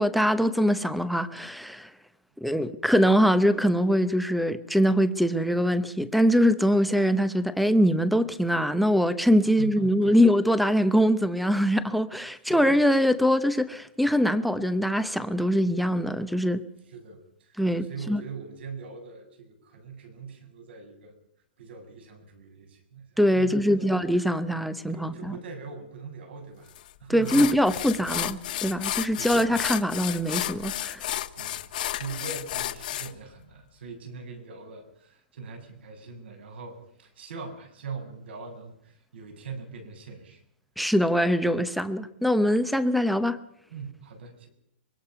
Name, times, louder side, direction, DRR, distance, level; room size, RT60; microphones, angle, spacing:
voice 1, 0.0-1.9 2.4-16.6 17.6-18.2 23.2-25.3 27.1-31.0 40.8-43.4, equal, ahead, 14 dB, 0.8 m, -23 dB
voice 2, 9.4-10.2 12.3-12.7 16.9-21.1 21.6-23.9 24.9-26.7 27.0-27.5 29.2-29.4 31.4-40.4 43.7-44.5, right 5 dB, 70° right, 5 dB, 6.9 m, -42 dB
sound 1, 26.8-26.9 27.3-33.1, left 13 dB, 50° left, 1.3 m, -32 dB
24.5 x 23.0 x 5.9 m, 0.76 s
hypercardioid pair, 170°, 6 cm